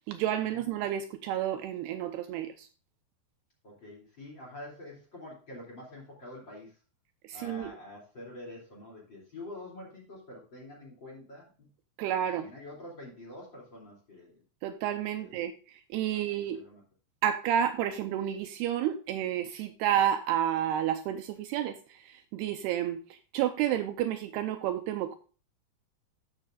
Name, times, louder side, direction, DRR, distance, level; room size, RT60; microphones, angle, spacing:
voice 1, 0.1-2.7 7.2-7.7 12.0-12.5 14.6-16.6 17.2-25.2, right 10 dB, 85° right, 8 dB, 2.4 m, -30 dB
voice 2, 3.6-6.7 7.3-11.7 12.3-14.4 15.1-15.3 16.3-16.8, left 1 dB, 30° left, -3 dB, 2.8 m, -46 dB
14.0 x 6.8 x 2.4 m, 0.36 s
omnidirectional pair, 5.0 m